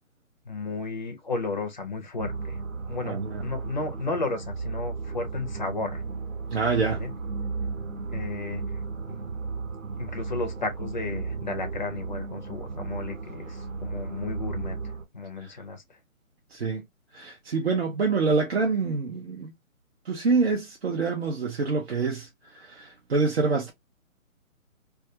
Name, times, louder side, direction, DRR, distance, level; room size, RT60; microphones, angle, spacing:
voice 1, 0.5-2.6 2.9-6.0 6.8-7.1 8.1-8.6 9.1-9.2 10.0-14.8 15.1-15.8, left 3 dB, 35° left, 0.5 m, -33 dB
sound 1, 2.2-15.0, right 4 dB, 70° right, 0.9 m, -34 dB
voice 2, 3.0-3.4 6.5-7.0 15.4-15.5 16.5-16.9 17.1-19.5 20.1-23.7, right 4 dB, 50° right, 0.6 m, -26 dB
2.3 x 2.3 x 2.6 m
hypercardioid pair, 165°, 42 cm